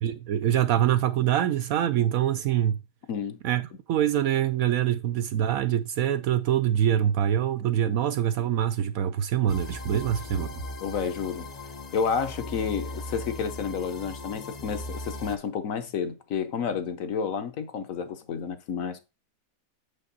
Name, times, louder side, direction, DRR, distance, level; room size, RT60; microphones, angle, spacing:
voice 1, 0.0-2.8 3.4-3.6 3.9-10.5, right 10 dB, 65° right, 0.9 m, -24 dB
sound 1, 9.5-15.4, left 1 dB, 45° left, 0.5 m, -38 dB
voice 2, 10.8-11.5 11.9-19.0, left 6 dB, 60° left, 1.1 m, -30 dB
7.4 x 5.4 x 3.9 m
omnidirectional pair, 1.8 m